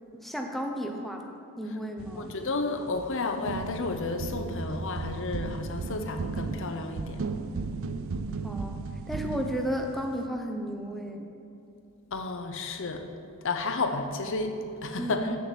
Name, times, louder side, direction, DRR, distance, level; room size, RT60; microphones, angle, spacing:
voice 1, 0.1-1.3 1.6-2.3 8.4-11.3 15.0-15.4, equal, ahead, 2 dB, 0.7 m, -33 dB
sound 1, 2.0-3.1 3.5-10.3, right 4 dB, 65° right, 0.4 m, -35 dB
voice 2, 2.2-7.2 12.1-13.1 13.4-15.3, left 3 dB, 60° left, 6 dB, 0.8 m, -32 dB
7.6 x 7.1 x 7.4 m, 2.7 s
head